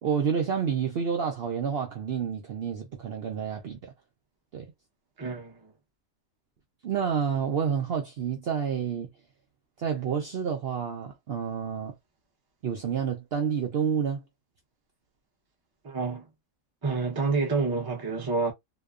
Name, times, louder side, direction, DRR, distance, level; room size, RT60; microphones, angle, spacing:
voice 1, 0.0-3.9 4.5-4.7 6.8-9.1 9.8-11.9 12.6-14.2, right 7 dB, 90° right, 0.5 m, -29 dB
voice 2, 5.2-5.7 15.8-16.3 16.8-18.5, right 4 dB, 30° right, 0.4 m, -28 dB
2.9 x 2.1 x 2.4 m
omnidirectional pair, 1.7 m